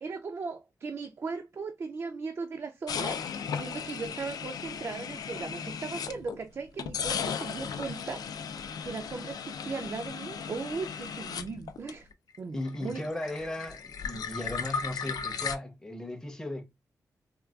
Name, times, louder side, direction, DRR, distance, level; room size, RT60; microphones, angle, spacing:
voice 1, 0.0-8.2 8.8-12.1 12.4-13.1, right 4 dB, 40° right, 0.3 m, -38 dB
sound 1, 2.9-6.4 6.8-12.4 12.6-15.6, left 6 dB, 75° left, 0.3 m, -36 dB
voice 2, 12.5-16.6, left 1 dB, 10° left, 0.6 m, -36 dB
3.5 x 2.2 x 2.2 m
wide cardioid pair, 140°, 7 cm